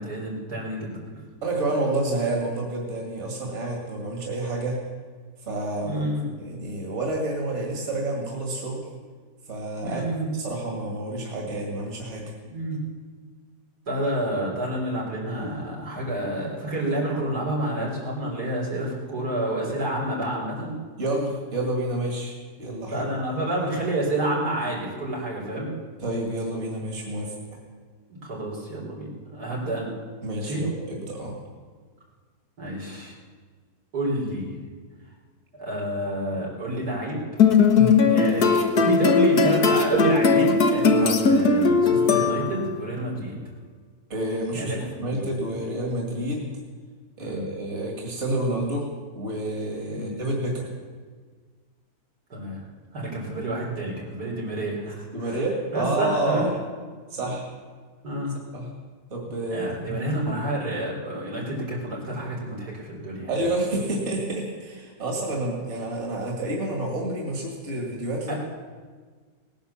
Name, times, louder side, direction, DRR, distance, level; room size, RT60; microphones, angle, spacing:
voice 1, 0.0-1.2 5.8-6.2 9.8-10.3 12.5-12.8 13.9-20.8 22.9-25.7 28.1-29.9 30.4-30.6 32.6-33.1 33.9-34.5 35.6-37.2 38.1-43.3 44.5-45.3 47.2-47.5 49.9-50.1 52.3-52.6 52.9-55.4 55.7-56.5 57.1-57.3 58.0-58.4 59.5-63.3 68.3-68.4, right 1 dB, 85° right, -4 dB, 4.7 m, -29 dB
voice 2, 1.4-4.8 5.4-6.0 6.4-8.9 9.5-10.0 10.3-12.4 21.0-23.1 26.0-27.3 30.2-31.4 37.7-38.0 41.0-41.2 44.1-44.7 45.0-46.5 47.2-48.9 49.2-50.7 55.1-56.5 57.1-57.5 58.5-58.7 59.1-60.0 63.3-68.3, right 2 dB, 45° right, 0 dB, 2.7 m, -29 dB
sound 1, 37.4-42.8, left 5 dB, 85° left, 1.8 m, -19 dB
18.5 x 10.5 x 7.1 m, 1.5 s
omnidirectional pair, 1.6 m